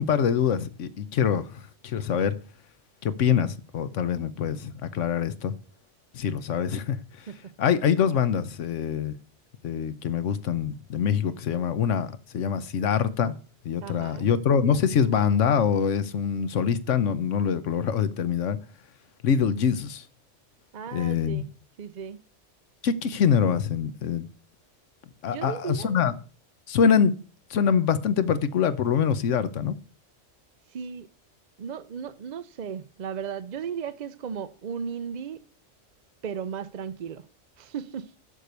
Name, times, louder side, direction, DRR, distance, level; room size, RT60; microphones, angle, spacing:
voice 1, 0.0-2.3 3.0-5.5 6.1-7.0 7.6-9.2 9.6-13.3 13.6-18.6 19.2-20.0 20.9-21.4 22.8-24.3 25.2-26.1 26.7-27.1 27.5-29.7, left 7 dB, 85° left, 1.2 m, -24 dB
voice 2, 13.8-14.3 20.7-21.5 21.8-22.2 25.3-26.0 30.7-31.1 31.6-35.4 36.2-37.2 37.6-38.1, right 7 dB, 50° right, 0.5 m, -35 dB
7.5 x 6.6 x 7.9 m
omnidirectional pair, 1.2 m